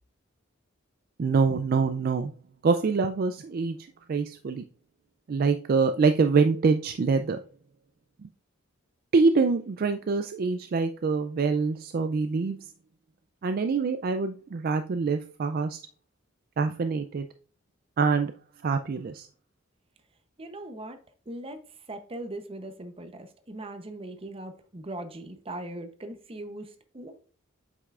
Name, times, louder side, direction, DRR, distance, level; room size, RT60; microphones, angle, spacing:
voice 1, 1.2-2.3 2.6-4.6 5.3-7.4 8.2-8.3 9.1-12.7 13.4-15.8 16.6-17.3 18.0-18.3 18.6-19.3, right 4 dB, 45° right, 0.3 m, -25 dB
voice 2, 20.4-21.0 21.3-21.6 21.9-27.1, right 1 dB, 30° right, 0.7 m, -40 dB
7.9 x 5.6 x 2.4 m
head